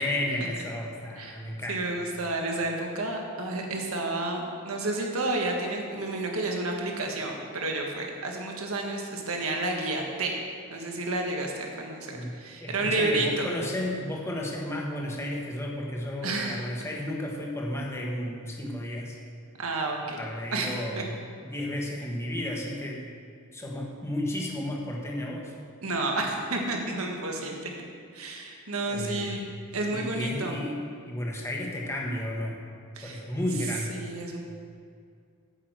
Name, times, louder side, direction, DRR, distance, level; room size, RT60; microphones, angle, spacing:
voice 1, 0.0-1.9 12.1-12.3 12.6-19.2 20.1-21.1 21.4-23.0 23.5-25.5 28.9-29.6 29.9-32.6 33.0-34.0, left 1 dB, 15° left, -1 dB, 1.3 m, -33 dB
voice 2, 1.7-10.3 10.7-13.5 16.2-16.6 19.6-20.2 20.5-21.0 25.8-27.7 28.1-29.5 29.7-30.6 33.0-33.2 33.9-34.4, right 2 dB, 85° right, 1 dB, 1.6 m, -30 dB
8.9 x 6.3 x 7.7 m, 2.2 s
head